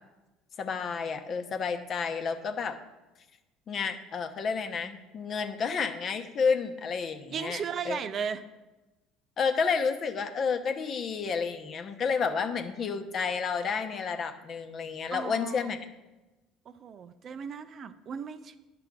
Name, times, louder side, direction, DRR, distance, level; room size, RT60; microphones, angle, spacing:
voice 1, 0.6-2.8 3.7-8.0 9.4-15.8, left 5 dB, 45° left, 7 dB, 0.8 m, -30 dB
voice 2, 7.3-8.4 15.1-15.7 16.8-18.6, right 6 dB, 45° right, 11 dB, 0.5 m, -36 dB
10.0 x 5.8 x 3.7 m, 1.1 s
hypercardioid pair, 65°, 0 cm